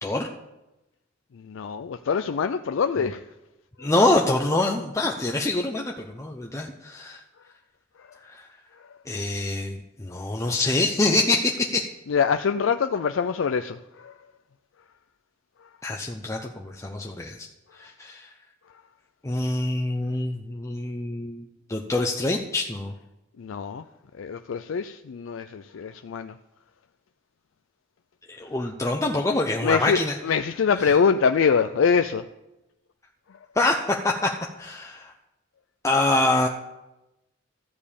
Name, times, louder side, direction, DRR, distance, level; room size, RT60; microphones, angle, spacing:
voice 1, 1.3-3.3 8.0-8.1 8.8-8.9 10.4-10.5 12.1-14.1 23.4-23.8 24.1-26.3 29.6-32.2, left 6 dB, 75° left, 0.4 m, -24 dB
voice 2, 3.8-7.2 8.2-8.5 9.1-11.9 15.8-17.5 17.8-18.3 19.2-22.9 28.4-30.1 33.5-34.3 34.6-35.1 35.8-36.5, left 2 dB, 15° left, 0.7 m, -25 dB
13.5 x 5.3 x 8.4 m
head